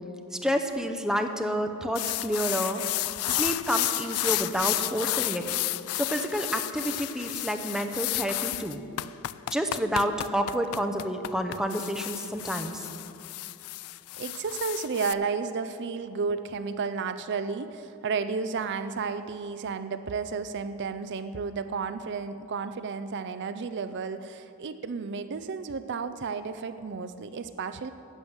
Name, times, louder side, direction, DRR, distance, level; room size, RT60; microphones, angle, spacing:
voice 1, 0.4-2.8 3.3-5.5 5.9-8.8 9.5-12.9, equal, 5° right, 5 dB, 0.6 m, -29 dB
sound 1, 1.9-15.1, left 16 dB, 80° left, 0.3 m, -32 dB
voice 2, 14.2-27.9, right 5 dB, 55° right, 10 dB, 0.4 m, -32 dB
11.5 x 7.6 x 8.0 m, 2.7 s
head